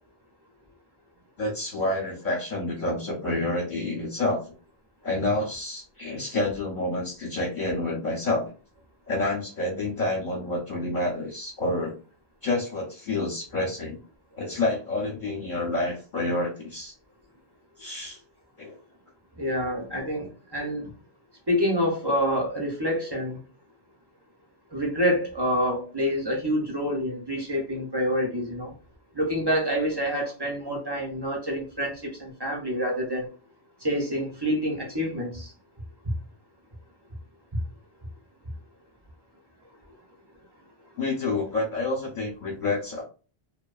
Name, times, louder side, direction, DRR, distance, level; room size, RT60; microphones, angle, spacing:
voice 1, 1.4-4.5 5.0-8.5 9.1-12.0 12.4-14.0 14.4-16.9 17.8-18.2 18.6-18.8 41.0-43.0, left 2 dB, 50° left, 0.8 m, -28 dB
voice 2, 19.4-20.9 21.5-23.4 24.7-28.7 29.1-33.3 33.8-35.5 37.5-37.6, equal, 30° right, 0.5 m, -27 dB
2.7 x 2.1 x 2.3 m
omnidirectional pair, 1.1 m